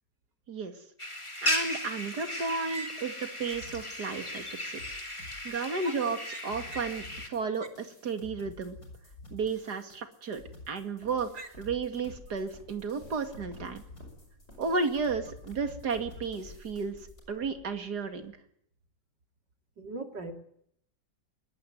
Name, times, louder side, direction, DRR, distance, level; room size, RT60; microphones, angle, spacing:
sound 1, 1.0-7.3, left 1 dB, 15° left, 3.2 m, -36 dB
voice 1, 1.4-3.1 3.4-4.8 5.4-8.8 9.3-13.8 14.6-17.0 17.3-18.4, right 4 dB, 65° right, 8 dB, 2.8 m, -33 dB
sound 2, 3.5-17.2, left 2 dB, 55° left, 7.5 m, -51 dB
Walk footsteps, 10.4-18.3, left 2 dB, 35° left, 7.9 m, -54 dB
voice 2, 19.8-20.3, right 3 dB, 80° right, 6 dB, 3.5 m, -39 dB
22.5 x 19.5 x 9.4 m, 0.69 s
omnidirectional pair, 1.9 m